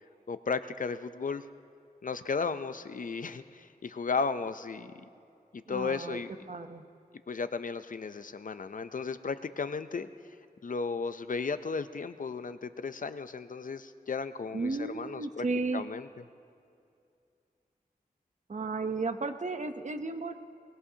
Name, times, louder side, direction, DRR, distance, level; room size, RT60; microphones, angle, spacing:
voice 1, 0.3-1.4 2.0-5.0 5.7-6.3 7.3-10.1 10.6-15.5 15.7-16.1, left 5 dB, 55° left, 12 dB, 0.5 m, -34 dB
voice 2, 5.7-6.2 6.5-6.8 14.5-15.8 18.5-20.3, right 3 dB, 50° right, 8 dB, 0.8 m, -33 dB
23.0 x 19.5 x 2.8 m, 2.5 s
wide cardioid pair, 90°, 16 cm